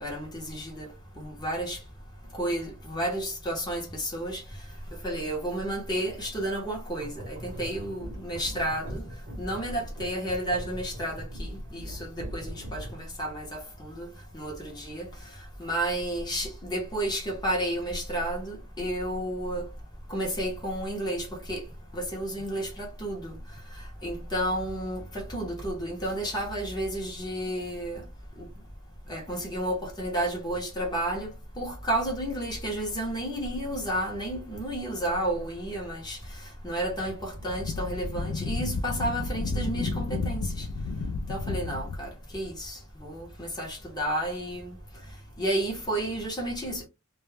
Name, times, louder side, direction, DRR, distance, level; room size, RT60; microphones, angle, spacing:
voice 1, 0.0-0.9 1.2-1.8 2.3-4.4 5.0-9.1 9.4-14.1 14.3-15.1 15.6-19.6 20.1-21.6 21.9-23.4 24.0-28.0 28.4-28.5 29.1-31.3 31.6-36.2 36.6-40.7 41.3-44.8 45.4-46.9, right 1 dB, 20° left, 0.6 m, -31 dB
sound 1, 7.0-13.2, equal, 40° right, 0.8 m, -41 dB
Wind, 37.2-42.1, left 3 dB, 85° left, 0.3 m, -32 dB
2.2 x 2.0 x 3.1 m
head